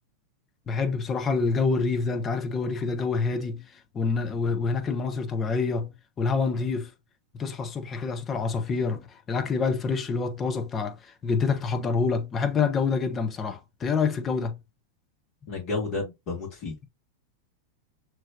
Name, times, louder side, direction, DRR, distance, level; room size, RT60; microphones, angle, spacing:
voice 1, 0.7-3.6 3.9-6.9 7.3-14.6, left 4 dB, 25° left, 1.0 m, -27 dB
voice 2, 15.5-16.9, left 3 dB, 40° left, 2.6 m, -32 dB
6.0 x 3.1 x 2.7 m
figure-of-eight pair, 90°, 0 cm